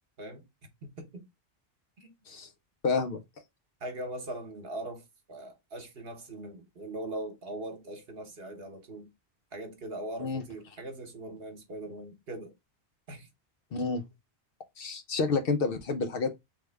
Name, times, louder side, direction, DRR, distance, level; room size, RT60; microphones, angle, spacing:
voice 1, 0.8-1.3 2.0-2.1 3.8-9.1 9.5-12.5 13.1-13.3, right 1 dB, 60° right, 1.2 m, -40 dB
voice 2, 2.8-3.2 10.2-10.4 13.7-14.0 14.8-16.3, left 4 dB, 60° left, 0.8 m, -29 dB
3.4 x 3.2 x 3.3 m
omnidirectional pair, 1.1 m